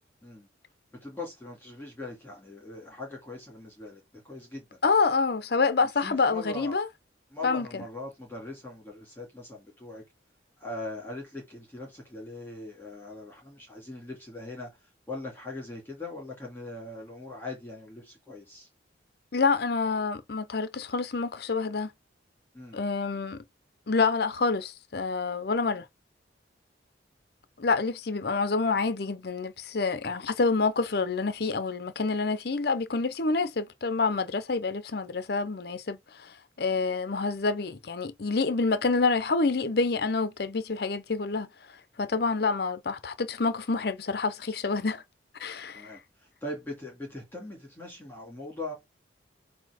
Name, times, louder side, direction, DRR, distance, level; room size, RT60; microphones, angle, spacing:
voice 1, 1.0-4.8 6.0-6.8 7.3-10.0 10.6-18.7 22.5-22.8 45.7-48.7, left 2 dB, 10° left, 2.2 m, -41 dB
voice 2, 4.8-6.9 7.4-7.8 19.3-21.9 22.7-23.4 23.9-25.9 27.6-41.5 42.0-45.0 45.4-46.0, left 4 dB, 55° left, 0.6 m, -27 dB
7.5 x 2.8 x 4.9 m
head